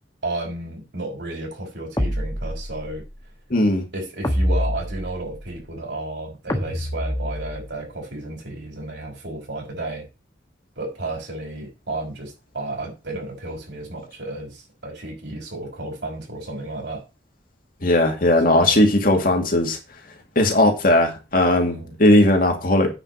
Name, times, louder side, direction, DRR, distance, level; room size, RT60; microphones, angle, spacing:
voice 1, 0.2-3.0 3.9-10.1 10.8-17.0 18.4-18.8 21.7-21.9, right 2 dB, 65° right, 5.5 m, -32 dB
sound 1, 2.0-3.0 4.2-5.5 6.5-7.8, equal, 20° left, 1.5 m, -26 dB
voice 2, 3.5-3.8 17.8-19.8 20.4-22.9, left 1 dB, 50° left, 2.3 m, -18 dB
9.2 x 5.3 x 6.3 m
head